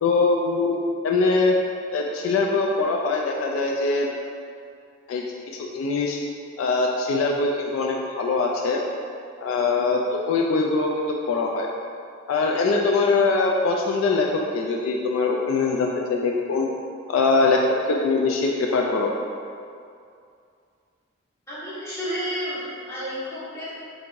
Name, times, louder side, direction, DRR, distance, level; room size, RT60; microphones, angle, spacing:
voice 1, 0.0-1.6 1.9-4.1 5.1-5.2 5.5-6.2 6.6-8.8 9.4-10.9 11.3-11.7 12.3-16.7 17.1-19.1, left 3 dB, 75° left, 1 dB, 0.3 m, -22 dB
voice 2, 21.5-23.7, equal, 15° left, -13 dB, 1.3 m, -31 dB
4.5 x 2.6 x 2.5 m, 2.4 s
head